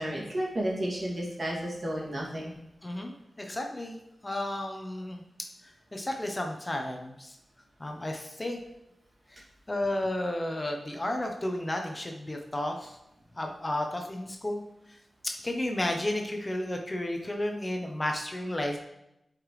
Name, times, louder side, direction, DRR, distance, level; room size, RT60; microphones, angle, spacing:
voice 1, 0.0-2.5, right 1 dB, 50° right, -4 dB, 2.5 m, -32 dB
voice 2, 2.8-5.2 5.9-7.3 7.8-8.6 9.3-9.4 9.7-13.0 13.4-14.6 15.2-18.8, left 1 dB, 25° left, 2 dB, 0.9 m, -32 dB
11.0 x 5.0 x 3.3 m, 0.86 s
wide cardioid pair, 75°, 0 cm